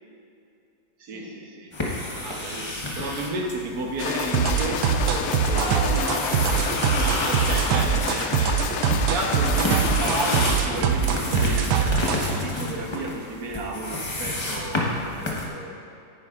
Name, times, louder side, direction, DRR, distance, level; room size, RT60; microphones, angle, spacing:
voice 1, 1.0-1.7 2.2-6.0 7.1-8.7 8.9-15.8, right 2 dB, 70° right, 1 dB, 1.4 m, -32 dB
sound 1, 1.7-15.5, left 2 dB, 25° left, 0.7 m, -30 dB
sound 2, 4.0-10.5, left 6 dB, 80° left, 0.6 m, -29 dB
sound 3, 4.3-12.3, right 8 dB, 85° right, 1.2 m, -23 dB
voice 2, 5.4-7.5, left 1 dB, 20° right, -9 dB, 2.1 m, -33 dB
10.5 x 9.6 x 2.4 m, 2.6 s
omnidirectional pair, 1.8 m